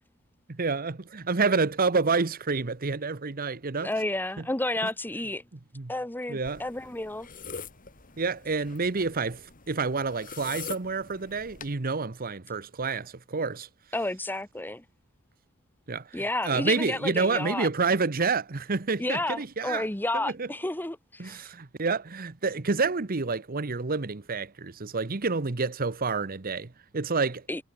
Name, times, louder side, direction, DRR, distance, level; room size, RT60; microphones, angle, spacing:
voice 1, 0.5-3.9 5.7-5.9 6.3-6.6 8.2-13.7 15.9-19.8 20.4-20.5 21.2-27.6, right 4 dB, 45° right, 1.0 m, -28 dB
voice 2, 3.8-5.4 5.9-7.3 13.9-14.8 16.1-17.7 19.0-21.4 27.5-27.6, left 1 dB, 10° left, 1.0 m, -31 dB
sound 1, 6.4-11.7, left 5 dB, 40° left, 3.1 m, -44 dB
head